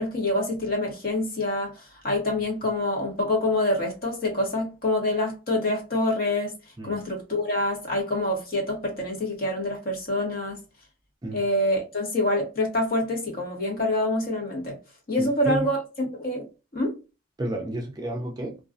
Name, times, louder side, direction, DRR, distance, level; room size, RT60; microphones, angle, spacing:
voice 1, 0.0-6.5 6.8-10.6 11.3-14.8 15.1-16.5 16.7-17.0, left 1 dB, 45° left, 1.0 m, -26 dB
voice 2, 15.2-15.7 17.4-18.6, right 1 dB, 20° right, 0.4 m, -31 dB
2.4 x 2.2 x 2.4 m
head